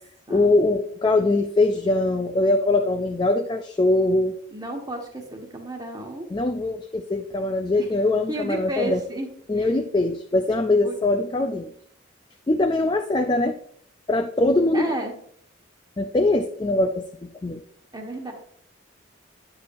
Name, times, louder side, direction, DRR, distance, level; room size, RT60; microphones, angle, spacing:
voice 1, 0.3-4.4 6.3-9.0 9.5-11.7 12.5-13.6 14.1-14.9 16.0-17.6, left 2 dB, 20° left, 6 dB, 0.3 m, -22 dB
voice 2, 4.5-6.3 8.3-9.3 9.5-9.7 10.8-10.9 14.7-15.1 17.9-18.3, right 1 dB, 20° right, 1 dB, 1.3 m, -31 dB
10.0 x 6.9 x 2.6 m, 0.63 s
head